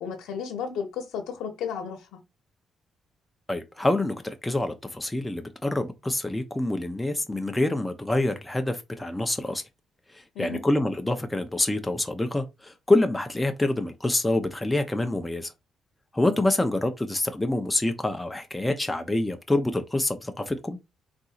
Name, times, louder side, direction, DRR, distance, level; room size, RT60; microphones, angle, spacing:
voice 1, 0.0-2.2 10.3-10.6, left 7 dB, 85° left, 0.8 m, -33 dB
voice 2, 3.5-9.6 10.1-15.5 16.1-20.8, left 2 dB, 10° left, 0.5 m, -26 dB
4.0 x 2.6 x 2.3 m
cardioid pair, 90°, 0 cm